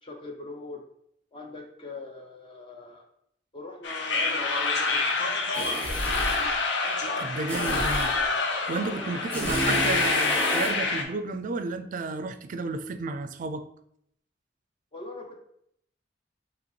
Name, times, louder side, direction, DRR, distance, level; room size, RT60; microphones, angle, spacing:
voice 1, 0.0-0.8 1.3-3.1 3.5-5.0 5.6-6.6 7.1-8.4 8.8-9.6 14.9-15.4, left 2 dB, 30° left, 0.5 m, -42 dB
sound 1, 3.8-11.0, left 3 dB, 75° left, 0.6 m, -27 dB
sound 2, 5.5-6.5 7.5-8.2 9.3-10.8, equal, 10° left, 1.0 m, -30 dB
voice 2, 7.2-8.1 8.7-13.6, right 3 dB, 45° right, 0.4 m, -32 dB
5.0 x 3.0 x 3.1 m
head